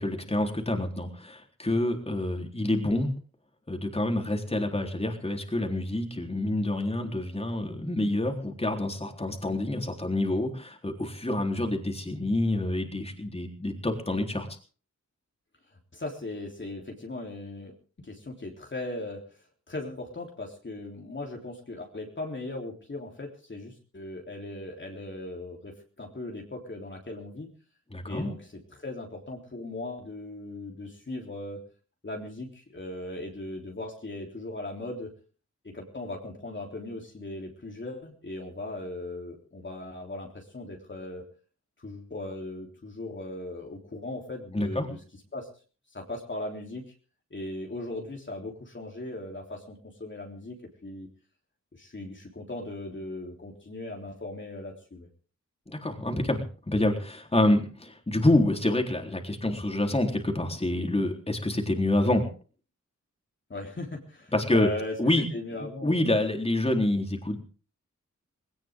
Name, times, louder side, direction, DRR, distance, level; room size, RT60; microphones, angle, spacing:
voice 1, 0.0-3.1 3.7-14.5 27.9-28.3 44.5-44.9 55.7-62.3 64.3-64.7 65.0-65.2 65.6-67.4, left 1 dB, 20° left, 2 dB, 3.9 m, -27 dB
voice 2, 15.9-17.7 18.0-19.2 19.7-27.5 28.1-31.6 32.0-35.1 35.6-41.2 41.8-45.0 45.3-45.5 45.9-46.9 47.3-51.1 51.8-55.1 63.5-66.0, left 2 dB, 40° left, 1 dB, 3.7 m, -38 dB
19.0 x 18.5 x 3.8 m, 0.40 s
wide cardioid pair, 75°, 30 cm